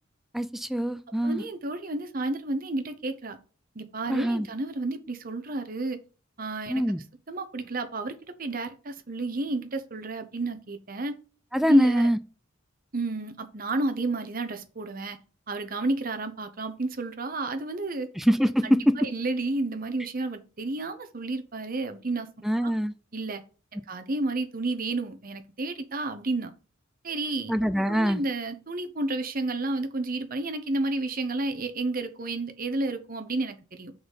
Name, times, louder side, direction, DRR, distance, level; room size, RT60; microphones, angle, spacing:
voice 1, 0.3-1.4 4.1-4.5 6.7-7.0 11.5-12.2 18.2-19.0 22.4-22.9 27.5-28.2, equal, ahead, 0.4 m, -23 dB
voice 2, 1.2-3.4 3.7-6.0 6.4-6.8 7.3-11.2 11.7-12.1 12.9-15.2 15.5-18.1 19.0-22.3 22.5-22.7 23.1-23.4 23.7-26.5 27.0-27.5 27.9-33.9, right 2 dB, 45° right, 0.9 m, -31 dB
6.5 x 4.1 x 5.6 m
head